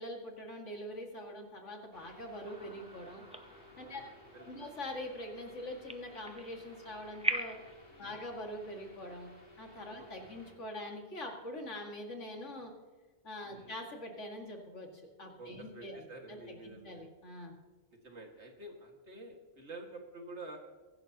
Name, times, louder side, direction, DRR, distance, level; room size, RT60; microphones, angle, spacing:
voice 1, 0.0-3.2 3.8-4.0 4.5-7.6 8.0-9.3 9.6-12.7 13.2-14.9 15.2-17.5, left 1 dB, 75° left, 2 dB, 2.5 m, -44 dB
sound 1, 1.9-10.5, left 1 dB, 50° left, 3.3 m, -57 dB
sound 2, 2.5-7.7, right 1 dB, 5° right, 0.6 m, -41 dB
voice 2, 3.8-4.7 7.9-8.2 10.0-10.3 13.5-13.8 15.4-17.0 18.0-20.6, right 2 dB, 65° right, 2 dB, 2.4 m, -49 dB
23.0 x 11.5 x 2.9 m, 1.4 s
omnidirectional pair, 1.3 m